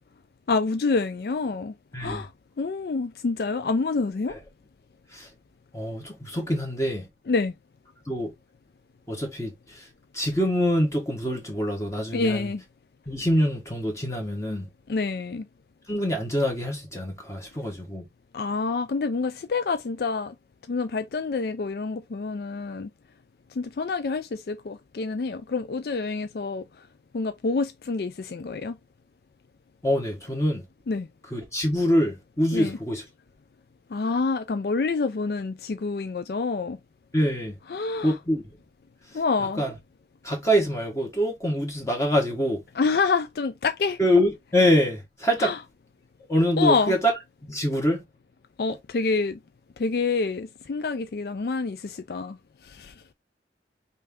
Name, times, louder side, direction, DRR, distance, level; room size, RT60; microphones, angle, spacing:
voice 1, 0.5-2.3 2.6-4.4 7.3-7.5 12.1-12.6 14.9-15.5 18.3-20.3 20.7-22.9 23.5-26.9 27.1-28.8 30.9-31.1 32.5-32.8 33.9-36.8 37.7-38.2 39.1-39.6 42.7-44.0 45.4-45.6 46.6-47.0 48.6-49.4 49.8-52.4 52.6-52.9, left 4 dB, 60° left, 0.4 m, -27 dB
voice 2, 5.7-7.1 8.1-8.3 9.1-9.9 10.1-12.5 13.1-14.7 15.9-18.0 29.8-30.6 31.3-33.0 37.1-37.5 38.0-38.4 39.6-39.7 40.2-42.6 44.0-45.5 46.3-47.1 47.5-48.0, equal, 15° left, 1.2 m, -25 dB
5.4 x 2.7 x 3.5 m
head